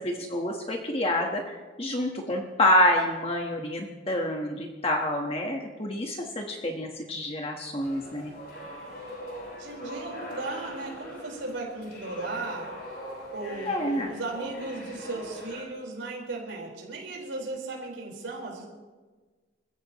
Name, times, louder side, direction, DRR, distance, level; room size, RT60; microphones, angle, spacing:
voice 1, 0.0-8.3 13.6-14.1, left 1 dB, 30° left, 1 dB, 1.4 m, -27 dB
sound 1, 7.8-15.6, equal, 55° left, 6.9 m, -41 dB
voice 2, 9.6-12.7 13.3-18.6, right 2 dB, 85° right, -2 dB, 4.7 m, -36 dB
28.0 x 15.5 x 3.1 m, 1.3 s
head